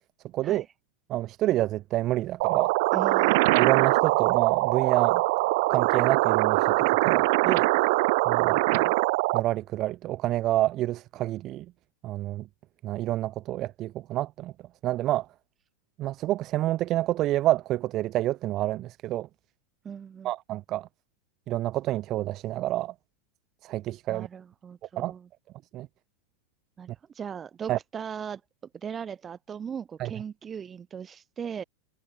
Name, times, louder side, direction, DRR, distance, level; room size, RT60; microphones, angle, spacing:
voice 1, 0.3-0.6 1.1-2.7 3.5-5.2 5.7-7.7 8.3-8.9 9.3-11.6 12.0-12.4 12.8-14.5 14.8-15.2 16.0-19.3 20.2-20.9 21.5-22.9 23.6-24.3 25.0-25.1 25.7-25.9 27.7-27.8 30.0-30.1, right 15 dB, 45° right, 1.2 m, -28 dB
sound 1, 2.4-9.4, right 24 dB, 60° right, 0.7 m, -23 dB
voice 2, 2.9-3.6 19.8-20.3 24.1-25.3 26.8-26.9 27.2-28.4 28.7-31.6, right 7 dB, 25° right, 5.3 m, -38 dB
hypercardioid pair, 100°, 0 cm